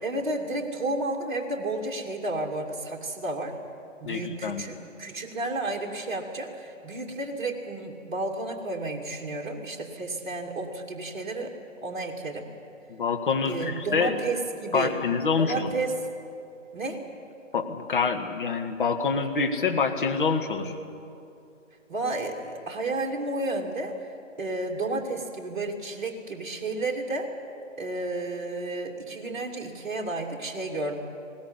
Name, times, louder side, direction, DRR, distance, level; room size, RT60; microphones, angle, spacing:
voice 1, 0.0-3.6 4.0-11.5 11.8-12.5 13.4-15.0 15.4-15.9 16.7-17.0 21.9-23.9 24.4-27.3 27.8-31.0, right 2 dB, 40° right, 0 dB, 2.6 m, -32 dB
voice 2, 4.0-4.6 12.9-14.2 14.7-15.7 17.5-20.7, left 5 dB, 40° left, 4 dB, 1.8 m, -26 dB
21.0 x 18.5 x 9.9 m, 2.6 s
figure-of-eight pair, 145°, 39 cm